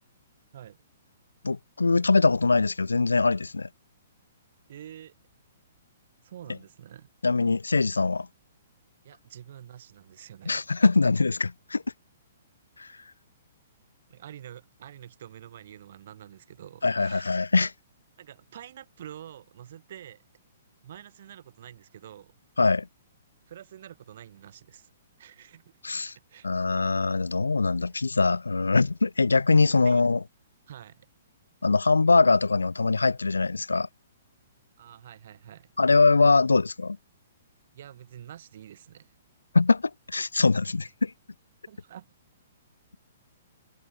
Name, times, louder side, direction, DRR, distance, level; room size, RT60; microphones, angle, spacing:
voice 1, 1.4-3.7 7.2-8.3 10.5-11.8 12.8-12.9 16.8-17.7 22.6-22.9 25.8-26.1 26.4-30.2 31.6-33.9 35.8-37.0 39.5-39.8 40.1-41.1, left 3 dB, 80° left, 0.4 m, -22 dB
voice 2, 4.7-5.1 6.2-7.1 9.0-10.7 14.1-17.3 18.2-20.2 20.8-22.3 23.5-24.9 25.2-25.6 26.3-26.5 29.8-30.0 30.7-31.0 34.8-35.7 37.7-39.1 41.7-42.1, right 10 dB, 55° right, 5.0 m, -47 dB
figure-of-eight pair, 120°, 0 cm